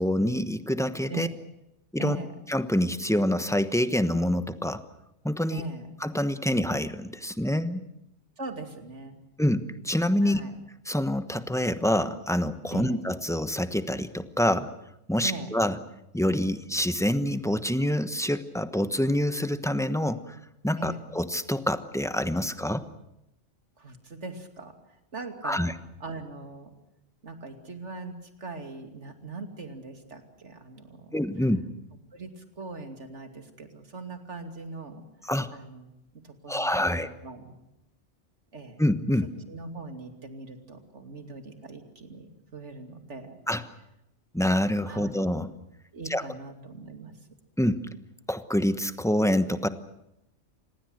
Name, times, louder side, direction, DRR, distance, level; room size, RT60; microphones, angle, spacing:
voice 1, 0.0-1.3 1.9-2.2 2.5-4.8 5.2-5.6 6.0-7.8 9.4-10.4 10.9-14.7 15.1-15.8 16.1-20.4 20.6-22.8 25.4-25.7 31.1-31.6 35.2-35.5 36.5-37.1 38.8-39.3 43.5-43.6 44.3-45.5 46.1-46.2 47.6-47.8 48.3-49.7, left 1 dB, 5° left, 11 dB, 1.1 m, -26 dB
voice 2, 2.0-2.3 5.5-5.9 8.4-9.2 10.2-10.5 12.7-13.0 15.2-15.5 20.8-21.0 23.8-24.7 25.1-25.7 26.0-26.7 27.2-31.2 32.1-35.0 35.5-35.9 36.2-37.5 38.5-38.8 39.5-43.4 44.9-45.2 45.9-47.1, right 3 dB, 70° right, 7 dB, 2.9 m, -40 dB
26.5 x 19.5 x 8.0 m, 0.85 s
omnidirectional pair, 1.2 m